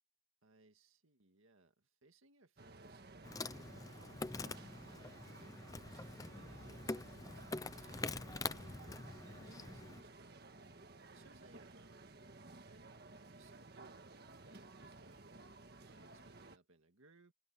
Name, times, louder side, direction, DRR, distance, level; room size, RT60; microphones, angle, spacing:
voice 1, 0.4-4.3 4.9-7.5 7.7-10.5 11.1-12.1 12.7-15.5 15.8-17.3, right 2 dB, 80° right, 1.9 m, -67 dB
sound 1, 2.6-16.6, right 2 dB, 50° right, 1.7 m, -56 dB
Insect, 3.2-10.0, left 3 dB, 15° left, 0.5 m, -45 dB
head